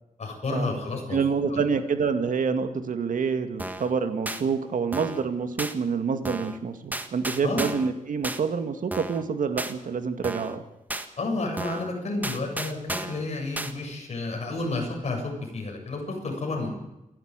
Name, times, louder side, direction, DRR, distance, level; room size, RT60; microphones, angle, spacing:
voice 1, 0.2-1.2 1.5-1.6 7.4-7.7 11.2-16.7, left 2 dB, 55° left, 1 dB, 7.7 m, -31 dB
voice 2, 1.1-10.6, right 5 dB, 75° right, 8 dB, 2.2 m, -27 dB
sound 1, 3.6-3.9 4.3-4.4 4.9-5.2 5.6-5.7 6.2-6.6 6.9-7.9 8.2-8.4 8.9-9.2 9.6-9.7 10.2-10.6 10.9-11.1 11.6-11.9 12.2-13.2 13.6-13.7, right 1 dB, 10° right, 1.7 m, -33 dB
27.5 x 12.0 x 9.1 m, 0.93 s
wide cardioid pair, 145°, 14 cm